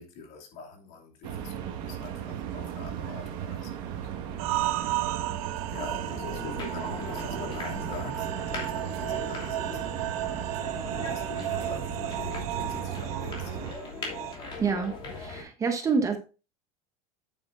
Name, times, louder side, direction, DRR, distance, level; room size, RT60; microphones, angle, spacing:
voice 1, 0.0-4.1 5.7-9.8 11.1-13.6, left 4 dB, 50° left, 2.7 m, -43 dB
sound 1, 1.2-13.7, right 9 dB, 50° right, 1.7 m, -36 dB
sound 2, 4.4-14.4, right 15 dB, 70° right, 0.9 m, -34 dB
sound 3, 6.1-15.4, left 3 dB, 25° left, 2.8 m, -40 dB
voice 2, 14.6-16.2, right 5 dB, 15° right, 0.9 m, -27 dB
9.1 x 8.2 x 2.6 m
supercardioid pair, 160°, 19 cm